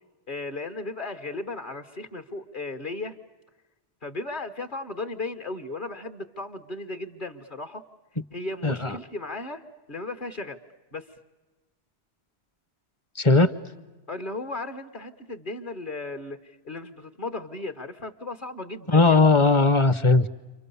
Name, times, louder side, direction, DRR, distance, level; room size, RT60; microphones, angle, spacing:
voice 1, 0.3-3.1 4.0-7.8 8.3-9.6 9.9-10.6 10.9-11.1 14.1-19.2, left 2 dB, 45° left, 6 dB, 1.3 m, -35 dB
voice 2, 8.6-8.9 13.2-13.5 18.9-20.3, left 3 dB, 30° left, 13 dB, 0.9 m, -18 dB
30.0 x 25.0 x 6.9 m, 1.2 s
omnidirectional pair, 1.2 m